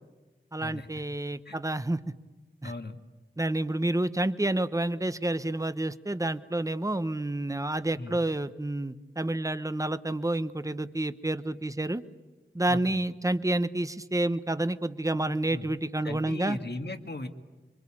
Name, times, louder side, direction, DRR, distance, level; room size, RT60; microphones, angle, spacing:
voice 1, 0.5-2.0 2.6-2.7 3.4-12.0 12.5-16.6, right 1 dB, 15° right, 12 dB, 0.9 m, -29 dB
voice 2, 2.6-3.0 8.0-8.2 12.7-13.0 15.1-15.7 16.0-17.3, left 2 dB, 55° left, 7 dB, 1.9 m, -38 dB
27.0 x 24.0 x 8.7 m, 1.2 s
wide cardioid pair, 65°, 20 cm